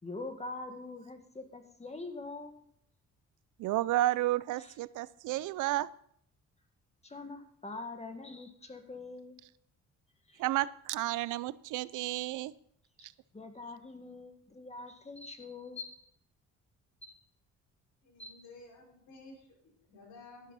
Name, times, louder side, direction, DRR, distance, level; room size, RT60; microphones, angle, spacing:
voice 1, 0.0-2.6 4.6-4.7 7.0-9.4 10.3-10.4 13.0-16.0 17.0-17.2 18.2-18.5, left 3 dB, 20° left, 6 dB, 1.9 m, -44 dB
voice 2, 3.6-5.9 10.4-12.5 13.0-13.1, right 15 dB, 85° right, 19 dB, 0.6 m, -31 dB
voice 3, 18.0-20.5, left 2 dB, 80° left, -2 dB, 5.3 m, -54 dB
12.0 x 11.5 x 4.1 m, 0.66 s
cardioid pair, 90°, 30 cm